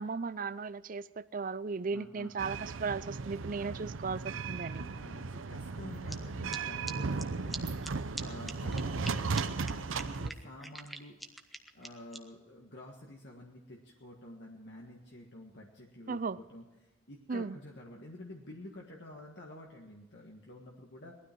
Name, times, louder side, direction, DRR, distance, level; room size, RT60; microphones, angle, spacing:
voice 1, 0.0-4.8 16.1-16.4 17.3-17.6, right 4 dB, 40° right, 0.5 m, -36 dB
voice 2, 1.9-2.4 4.8-11.2 11.7-21.2, left 1 dB, 55° left, 1.7 m, -49 dB
sound 1, 2.4-10.3, right 4 dB, 75° right, 0.7 m, -36 dB
sound 2, 6.1-6.2 6.5-6.6 6.9-7.0 7.2-7.3 7.5-7.6 7.8-7.9 8.2-8.3 8.5-9.1 9.4-9.5 9.7-9.8 10.0-12.2, right 1 dB, ahead, 1.0 m, -41 dB
19.5 x 12.5 x 4.6 m
head